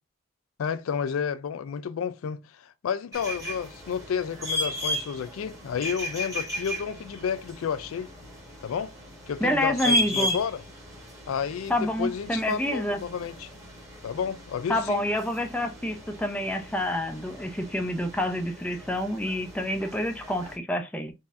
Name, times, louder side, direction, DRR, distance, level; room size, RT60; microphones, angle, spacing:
voice 1, 0.6-8.1 8.6-8.9 9.3-10.6 11.3-13.5 14.0-15.0, left 7 dB, 90° left, 0.4 m, -31 dB
sound 1, 3.1-20.6, equal, 15° right, 1.2 m, -35 dB
voice 2, 9.4-10.4 11.7-13.0 14.7-21.1, left 1 dB, 5° left, 0.4 m, -28 dB
3.9 x 2.7 x 2.4 m
head